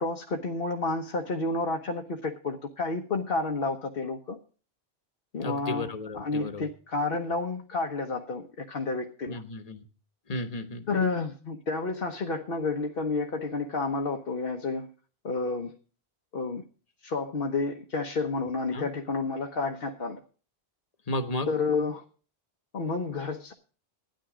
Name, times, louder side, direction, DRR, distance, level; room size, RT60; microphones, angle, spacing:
voice 1, 0.0-4.4 5.3-5.9 6.1-9.4 10.9-14.9 15.2-15.8 16.3-16.6 17.0-20.2 21.5-22.0 22.7-23.5, left 3 dB, 65° left, 2 dB, 1.2 m, -30 dB
voice 2, 5.4-6.7 9.3-9.8 10.3-10.8 18.7-18.9 21.1-21.5, left 2 dB, 40° left, 7 dB, 1.3 m, -33 dB
13.0 x 10.0 x 5.0 m, 0.38 s
omnidirectional pair, 1.0 m